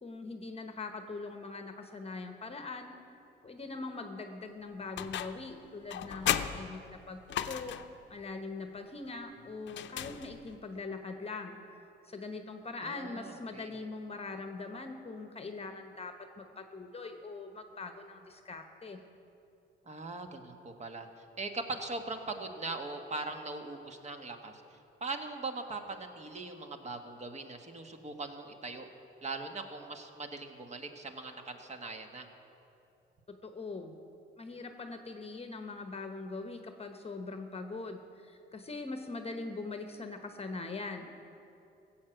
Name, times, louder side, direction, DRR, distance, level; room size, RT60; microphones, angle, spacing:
voice 1, 0.0-2.9 3.4-7.2 7.5-7.8 8.1-11.6 12.0-19.0 33.3-33.9 34.4-41.1, left 3 dB, 30° left, 6 dB, 1.0 m, -42 dB
sound 1, 5.0-5.5 5.9-8.0 9.7-10.6, left 10 dB, 70° left, 0.6 m, -35 dB
voice 2, 6.2-6.6 12.8-13.7 19.8-28.9 29.2-32.3, right 3 dB, 35° right, 5 dB, 1.4 m, -41 dB
16.0 x 7.6 x 7.9 m, 2.8 s
cardioid pair, 90°, 20 cm